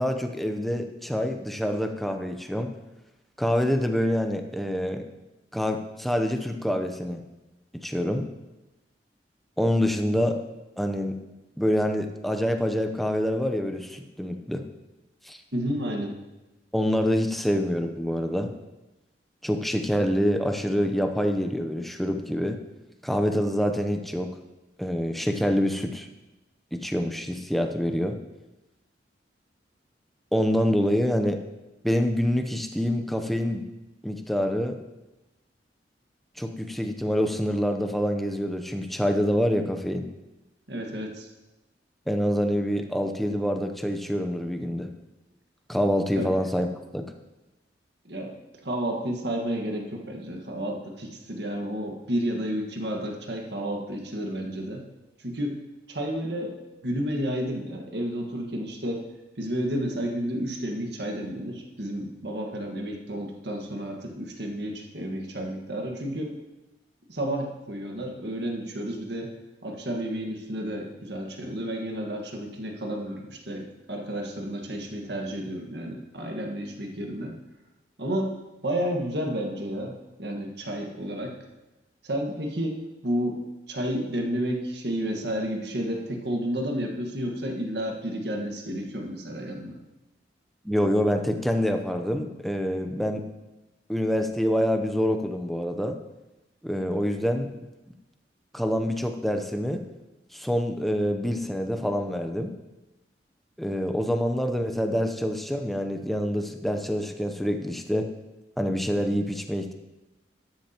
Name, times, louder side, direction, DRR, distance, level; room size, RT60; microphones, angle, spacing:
voice 1, 0.0-2.7 3.4-5.1 5.5-7.2 7.7-8.3 9.6-10.4 10.8-11.2 11.6-14.6 15.3-15.4 16.7-18.5 19.4-22.6 23.0-24.3 24.8-26.1 26.7-28.2 30.3-31.4 31.8-33.7 34.0-34.8 36.4-40.1 42.1-44.9 45.7-46.7 46.9-47.1 90.6-93.3 93.9-96.0 96.6-97.5 98.5-99.8 100.3-102.5 103.6-108.1 108.6-109.7, equal, ahead, 5 dB, 0.7 m, -26 dB
voice 2, 15.5-16.2 40.7-41.3 46.1-46.3 48.0-48.3 48.6-54.9 55.2-55.6 55.9-56.5 56.8-59.0 59.4-66.3 67.1-69.3 69.6-77.3 78.0-78.3 78.6-81.3 82.0-83.4 83.7-89.8, equal, 70° right, 1 dB, 1.6 m, -31 dB
13.0 x 10.5 x 2.9 m, 1.0 s
head